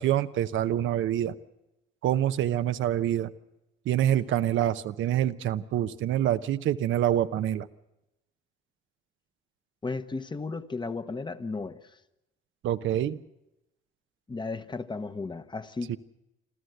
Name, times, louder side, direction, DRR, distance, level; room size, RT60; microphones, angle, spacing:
voice 1, 0.0-1.3 2.0-3.3 3.9-7.7 12.6-13.2 15.9-16.0, right 11 dB, 75° right, 11 dB, 0.8 m, -26 dB
voice 2, 9.8-11.8 14.3-16.0, left 3 dB, 25° left, 11 dB, 1.0 m, -34 dB
27.5 x 13.0 x 7.9 m, 0.92 s
cardioid pair, 90°, 20 cm